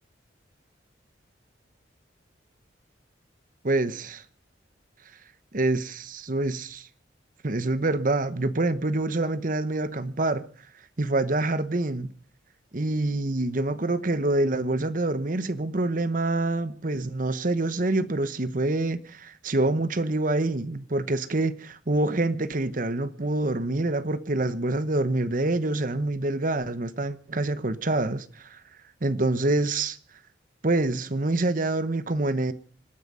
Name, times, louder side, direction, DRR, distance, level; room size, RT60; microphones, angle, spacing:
voice 1, 3.6-4.2 5.5-6.9 7.4-10.4 11.0-12.1 12.7-28.6 29.0-30.0 30.6-32.5, right 2 dB, 45° right, 1.0 m, -26 dB
26.0 x 10.0 x 5.5 m
head